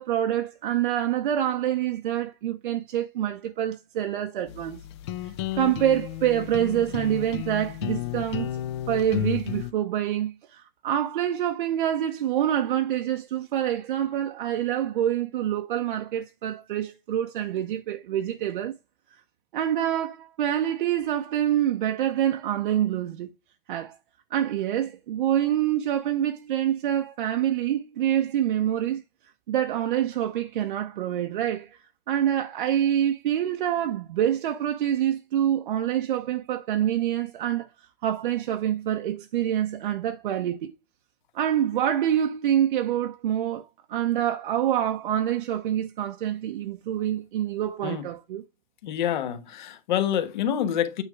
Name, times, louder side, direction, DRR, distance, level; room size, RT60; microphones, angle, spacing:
voice 1, 0.0-4.8 5.5-8.5 8.9-18.7 19.5-23.3 23.7-24.0 24.3-29.0 29.5-31.8 32.1-37.7 38.0-40.7 41.3-48.4, right 11 dB, 60° right, 0.8 m, -26 dB
sound 1, 4.5-9.7, left 12 dB, 30° left, 0.5 m, -32 dB
voice 2, 48.8-51.0, left 10 dB, 50° left, 1.3 m, -27 dB
9.0 x 3.7 x 4.6 m
hypercardioid pair, 165°, 29 cm